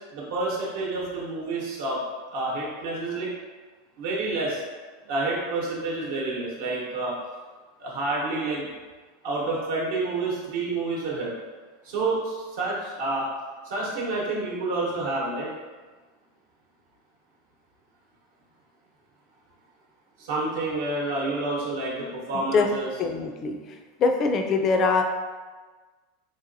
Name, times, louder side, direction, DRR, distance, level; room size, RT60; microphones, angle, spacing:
voice 1, 0.1-2.0 2.3-3.3 4.0-4.6 5.1-7.1 7.8-8.7 9.2-11.3 11.8-13.3 13.6-15.5 20.2-23.0, right 2 dB, 65° right, -4 dB, 0.9 m, -29 dB
voice 2, 23.0-23.5 24.0-25.0, left 4 dB, 30° left, 3 dB, 0.3 m, -22 dB
3.9 x 2.9 x 2.6 m, 1.4 s
supercardioid pair, 160°, 0 cm